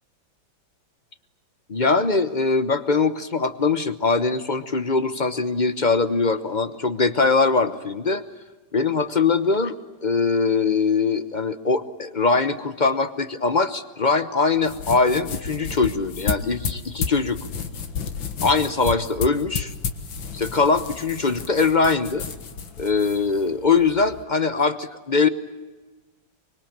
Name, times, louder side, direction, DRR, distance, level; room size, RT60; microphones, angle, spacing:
voice 1, 1.7-8.2 8.7-9.7 10.0-17.4 18.4-19.7 20.3-22.2 22.8-25.3, left 4 dB, 35° left, 12 dB, 0.7 m, -22 dB
sound 1, 14.5-24.2, left 5 dB, 75° left, 2.4 m, -32 dB
25.0 x 24.5 x 8.8 m, 1.3 s
omnidirectional pair, 2.2 m